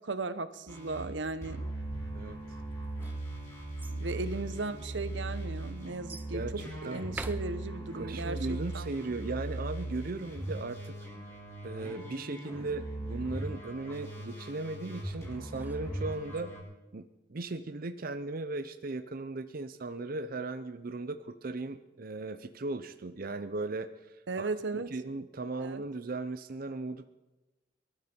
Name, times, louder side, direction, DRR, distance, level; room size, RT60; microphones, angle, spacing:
voice 1, 0.0-1.6 3.9-6.4 6.8-8.4 8.7-9.2 24.3-24.9 25.6-25.8, right 3 dB, 85° right, 12 dB, 0.9 m, -36 dB
sound 1, 0.7-1.1 1.4-16.6, right 2 dB, 15° left, 7.1 m, -39 dB
sound 2, 1.8-12.0, equal, 80° left, 4.8 m, -57 dB
sound 3, 2.7-4.0 4.8-4.9 6.1-6.4 7.0-8.1 15.1-16.4, right 2 dB, 10° right, 0.7 m, -46 dB
voice 2, 7.9-10.9 11.6-16.5 16.9-23.9 24.4-24.5 24.9-27.1, right 3 dB, 50° right, 10 dB, 0.7 m, -37 dB
23.5 x 12.0 x 4.5 m, 1.1 s
head